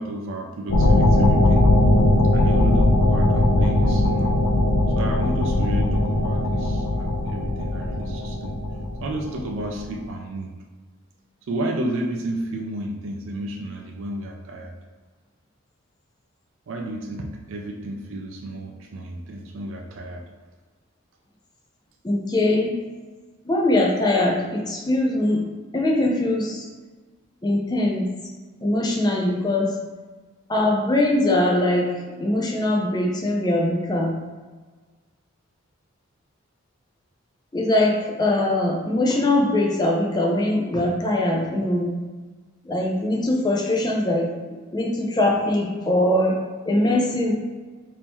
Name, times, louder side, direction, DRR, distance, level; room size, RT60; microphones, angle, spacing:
voice 1, 0.0-1.7 2.3-4.4 4.9-8.6 9.0-10.5 11.5-14.7 16.7-20.3, right 1 dB, 65° right, 1 dB, 0.4 m, -32 dB
sound 1, 0.7-9.8, left 1 dB, 90° left, 0.5 m, -19 dB
voice 2, 22.0-22.8 23.5-25.4 25.7-26.6 27.4-28.0 28.6-29.7 30.5-31.9 32.2-34.1 37.5-41.9 42.7-44.3 44.7-46.4 46.7-47.3, left 1 dB, 20° left, -1 dB, 0.4 m, -21 dB
3.5 x 2.7 x 2.9 m, 1.4 s
head